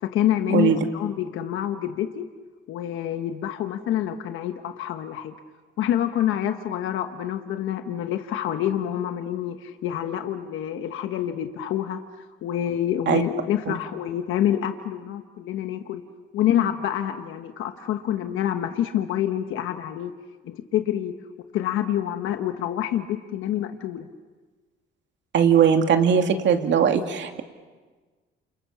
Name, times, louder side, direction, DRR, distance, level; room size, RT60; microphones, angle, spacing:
voice 1, 0.0-2.3 2.7-5.3 5.8-12.0 12.4-16.0 16.3-20.1 20.4-21.1 21.5-24.1, left 11 dB, 90° left, 7 dB, 1.2 m, -27 dB
voice 2, 25.3-27.4, right 7 dB, 65° right, 5 dB, 2.6 m, -19 dB
29.0 x 28.5 x 7.3 m, 1.4 s
cardioid pair, 90°, 20 cm